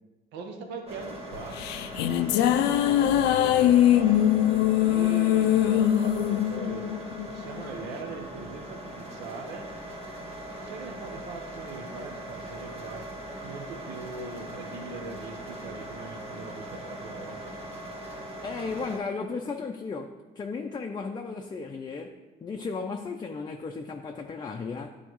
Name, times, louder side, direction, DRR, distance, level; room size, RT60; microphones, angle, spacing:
voice 1, 0.3-1.6 2.2-6.9 7.3-9.7 10.6-13.1 13.4-17.6, right 4 dB, 85° right, 4 dB, 0.8 m, -41 dB
sound 1, 0.9-19.0, right 1 dB, 35° right, 1.3 m, -40 dB
sound 2, 1.3-7.9, left 11 dB, 85° left, 0.4 m, -22 dB
voice 2, 18.4-24.9, left 4 dB, 25° left, 3 dB, 0.5 m, -35 dB
10.5 x 4.0 x 3.1 m, 1.2 s
cardioid pair, 110°, 17 cm